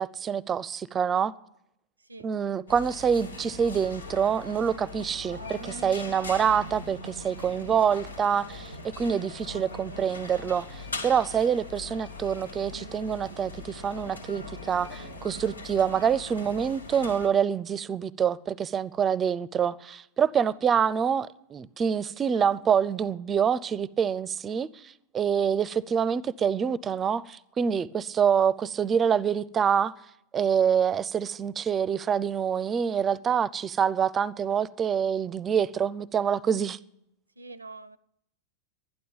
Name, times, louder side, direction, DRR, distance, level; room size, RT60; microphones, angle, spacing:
voice 1, 0.0-1.3 2.2-29.9 30.3-36.8, right 7 dB, 25° right, 0.5 m, -26 dB
voice 2, 2.0-2.3 5.9-6.0 20.4-20.5 22.1-22.5 25.3-25.5 37.4-38.0, right 3 dB, 80° right, 0.4 m, -46 dB
sound 1, 2.7-17.3, left 2 dB, 75° left, 1.9 m, -41 dB
12.0 x 11.0 x 8.6 m
figure-of-eight pair, 90°, 0 cm